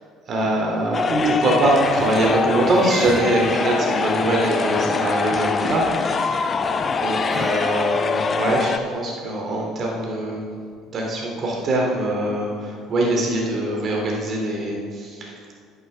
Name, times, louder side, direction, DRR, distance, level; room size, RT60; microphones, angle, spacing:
voice 1, 0.3-6.3 6.9-10.4 10.9-15.4, right 1 dB, 45° right, -1 dB, 2.6 m, -23 dB
sound 1, 0.9-8.8, left 5 dB, 35° left, 0.5 m, -23 dB
Crying sobbing, 1.9-4.4 6.6-8.1, equal, 5° left, 2.2 m, -34 dB
10.5 x 8.9 x 3.4 m, 2.2 s
hypercardioid pair, 60°, 0 cm